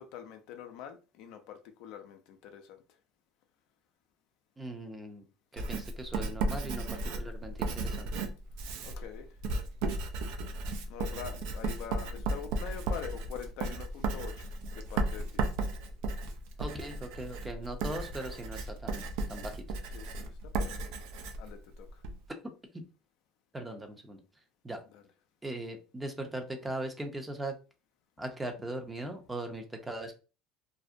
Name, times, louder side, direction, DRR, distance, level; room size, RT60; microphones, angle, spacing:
voice 1, 0.0-2.8 8.8-9.3 10.9-15.4 17.4-17.6 19.9-20.3 20.5-20.9 21.4-22.0 24.9-25.0, left 9 dB, 70° left, 0.4 m, -45 dB
voice 2, 4.6-5.2 5.5-8.1 16.6-19.0 19.3-19.6 23.5-24.2 24.6-24.8 25.4-27.6 28.2-30.1, right 1 dB, 15° right, 0.6 m, -39 dB
Writing, 5.6-22.2, right 2 dB, 70° right, 0.4 m, -35 dB
2.5 x 2.0 x 2.5 m
supercardioid pair, 95°, 0 cm